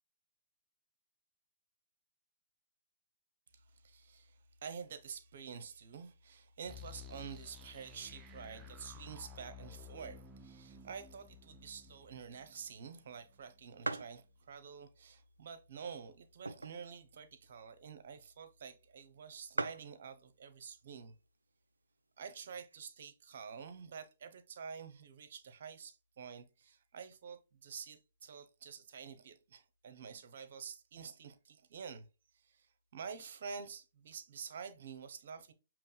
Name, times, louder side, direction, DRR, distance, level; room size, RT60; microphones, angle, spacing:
voice 1, 3.5-21.1 22.2-32.1 32.3-35.5, right 6 dB, 50° right, 0.8 m, -48 dB
sound 1, 6.6-13.4, left 5 dB, 15° right, 0.4 m, -54 dB
sound 2, 12.9-13.0 13.3-13.4 13.8-14.2 14.8-14.9 15.7-16.9 17.3-17.4 17.5-17.8 18.6-18.7 18.9-19.0 19.2-19.3 19.5-19.9 20.8-21.2 21.7-21.8 22.0-22.8, right 2 dB, 75° right, 0.4 m, -40 dB
6.8 x 3.0 x 2.3 m
figure-of-eight pair, 125°, 0 cm